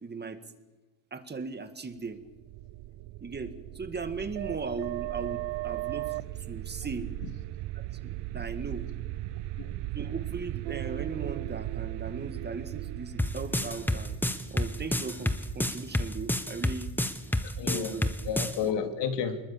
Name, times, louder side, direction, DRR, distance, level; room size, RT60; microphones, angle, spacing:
voice 1, 0.0-0.4 1.1-2.2 3.2-6.1 6.5-7.1 7.8-8.9 9.9-14.2 14.5-16.9 17.7-18.1, right 4 dB, 25° right, 9 dB, 2.0 m, -38 dB
sound 1, 2.3-16.0, right 16 dB, 85° right, 0.7 m, -37 dB
voice 2, 9.3-9.7 17.4-18.0 18.2-19.4, left 7 dB, 80° left, 6 dB, 3.0 m, -32 dB
sound 2, 13.2-18.6, left 1 dB, 5° left, 1.3 m, -28 dB
25.5 x 21.5 x 7.4 m, 1.2 s
cardioid pair, 130°, 41 cm